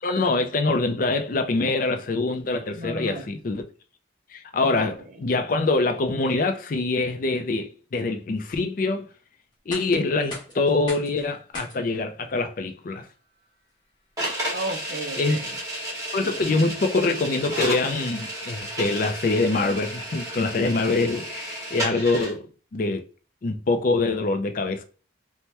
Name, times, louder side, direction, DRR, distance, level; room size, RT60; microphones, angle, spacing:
voice 1, 0.0-3.6 4.3-9.1 9.7-13.1 15.2-15.4 16.1-22.5 22.7-23.0 23.4-24.8, left 3 dB, 45° left, 0.4 m, -24 dB
voice 2, 2.7-3.3 4.6-5.4 14.5-16.0, right 2 dB, 40° right, 0.4 m, -35 dB
sound 1, 9.5-21.4, left 1 dB, 25° left, 1.0 m, -46 dB
sound 2, 14.2-22.3, right 1 dB, 15° right, 1.2 m, -32 dB
2.8 x 2.1 x 3.2 m
head